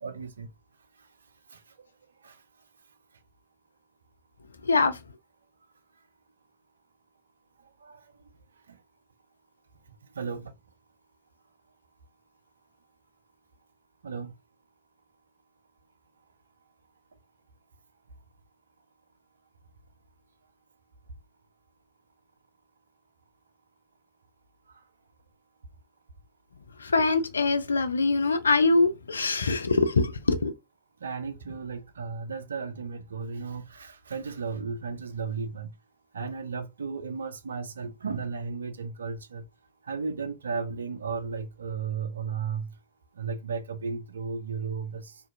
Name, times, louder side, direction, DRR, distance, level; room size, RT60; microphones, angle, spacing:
voice 1, 0.0-0.5 2.2-2.3 7.8-8.0 10.2-10.5 14.0-14.3 31.0-35.7 36.1-39.4 39.9-42.7 43.2-45.1, right 5 dB, 70° right, 0.4 m, -34 dB
voice 2, 4.6-5.0 26.8-30.5, left 3 dB, 75° left, 0.3 m, -23 dB
2.4 x 2.4 x 2.6 m
figure-of-eight pair, 90°, 0 cm